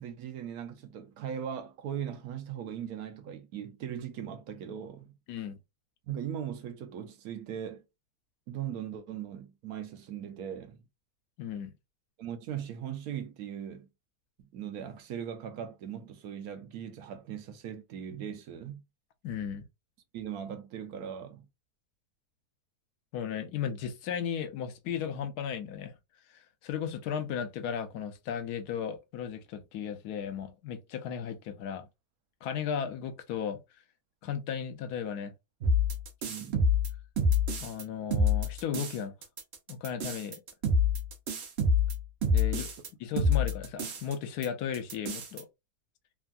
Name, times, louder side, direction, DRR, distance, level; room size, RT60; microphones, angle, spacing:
voice 1, 0.0-5.1 6.1-7.8 8.5-10.8 12.2-13.9 14.5-18.8 20.1-21.5 36.3-36.7, right 9 dB, 75° right, 1.0 m, -39 dB
voice 2, 11.4-11.7 19.2-19.6 23.1-26.0 26.3-31.9 32.4-33.6 34.2-35.3 37.6-39.1 39.7-40.4 42.3-42.7 43.0-45.5, left 8 dB, 80° left, 1.1 m, -35 dB
sound 1, 35.6-37.8 38.1-39.0 39.2-42.9 43.2-44.1 44.4-44.5 44.7-45.4, left 3 dB, 55° right, 0.8 m, -27 dB
3.4 x 2.2 x 2.4 m
omnidirectional pair, 1.7 m